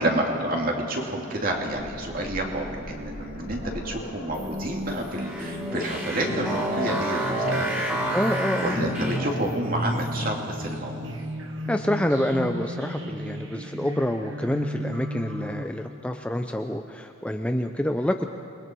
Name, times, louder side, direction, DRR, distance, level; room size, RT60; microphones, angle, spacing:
voice 1, 0.0-8.1 8.6-11.1, right 1 dB, 40° right, 0 dB, 2.6 m, -29 dB
sound 1, 1.2-8.9 10.0-10.1 10.5-10.6, left 1 dB, 90° left, 2.3 m, -43 dB
sound 2, 4.3-15.6, equal, 60° right, 1.7 m, -34 dB
sound 3, 5.1-9.5, right 1 dB, 10° right, 3.4 m, -29 dB
voice 2, 8.1-8.8 11.7-18.3, left 1 dB, 5° left, 5 dB, 0.5 m, -27 dB
28.0 x 21.0 x 4.6 m, 2.9 s
head